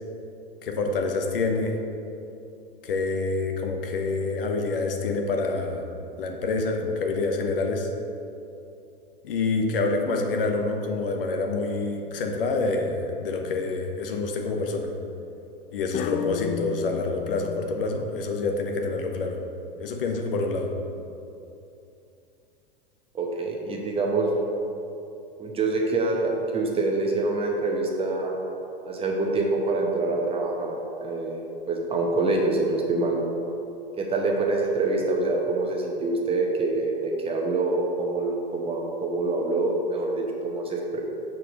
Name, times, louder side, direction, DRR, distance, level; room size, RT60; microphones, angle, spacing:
voice 1, 0.6-1.8 2.8-5.9 6.2-7.9 9.2-14.9 15.7-19.4 19.8-20.7, left 3 dB, 65° left, 3 dB, 0.9 m, -27 dB
sound 1, 13.2-13.7 15.9-17.8, left 8 dB, 30° left, 0.4 m, -34 dB
voice 2, 23.1-24.3 25.4-28.4 28.8-31.4 31.7-33.2 34.0-41.0, right 3 dB, 20° right, 0 dB, 0.9 m, -26 dB
6.2 x 4.6 x 5.0 m, 2.8 s
figure-of-eight pair, 95°, 30 cm